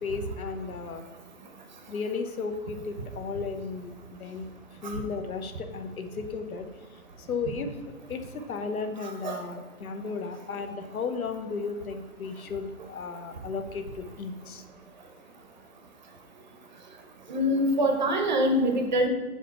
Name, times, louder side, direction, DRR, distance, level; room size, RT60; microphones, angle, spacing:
voice 1, 0.0-1.0 1.9-3.9 4.2-4.5 4.8-6.7 7.2-7.8 8.1-14.6, left 4 dB, 70° left, 7 dB, 1.0 m, -34 dB
voice 2, 17.3-19.1, equal, 30° right, 4 dB, 0.7 m, -24 dB
6.8 x 4.9 x 4.3 m, 1.3 s
hypercardioid pair, 160°, 44 cm